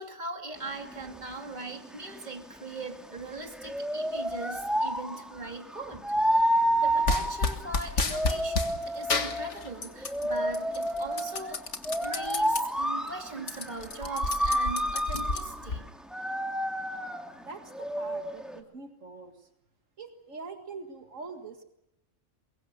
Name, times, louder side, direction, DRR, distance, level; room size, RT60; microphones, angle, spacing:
voice 1, 0.0-11.7 12.0-15.9, right 2 dB, 35° right, 4 dB, 2.7 m, -40 dB
sound 1, 0.6-18.6, equal, ahead, 2.0 m, -30 dB
sound 2, 7.1-8.7 9.1-10.2 10.5-12.6 13.0-13.1 13.4-15.8, left 3 dB, 60° left, 2.0 m, -30 dB
voice 2, 17.5-19.3 20.0-21.6, right 4 dB, 75° right, 6 dB, 2.3 m, -43 dB
23.0 x 22.5 x 6.8 m, 0.85 s
omnidirectional pair, 1.3 m